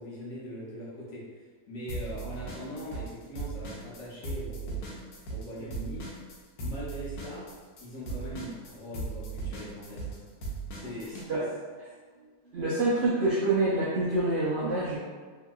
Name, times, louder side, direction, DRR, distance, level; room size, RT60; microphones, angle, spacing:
voice 1, 0.0-5.0 5.3-6.0 6.6-7.5 7.8-10.2 10.7-11.2, equal, 65° left, -7 dB, 1.1 m, -41 dB
sound 1, 1.9-3.1 3.4-11.3, right 3 dB, 85° left, 1.2 m, -37 dB
voice 2, 11.3-11.9 12.5-15.0, right 2 dB, 70° right, -8 dB, 0.6 m, -27 dB
2.9 x 2.7 x 2.3 m, 1.5 s
omnidirectional pair, 1.6 m